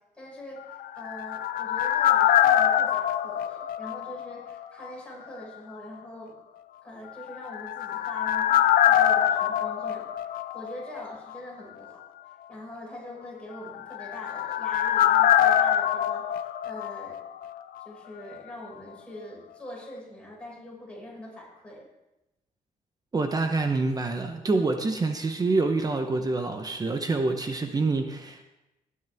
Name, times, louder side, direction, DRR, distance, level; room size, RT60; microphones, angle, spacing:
voice 1, 0.1-6.3 6.8-12.0 12.5-17.2 17.8-21.9, equal, 10° left, -4 dB, 5.7 m, -43 dB
sound 1, 0.7-4.6 4.8-4.9 7.3-11.1 11.3-11.4 13.7-17.5 17.8-17.9, left 11 dB, 80° left, 0.7 m, -24 dB
voice 2, 23.1-28.4, right 3 dB, 25° right, 5 dB, 0.9 m, -26 dB
20.0 x 9.6 x 3.6 m, 0.97 s
cardioid pair, 120°, 15 cm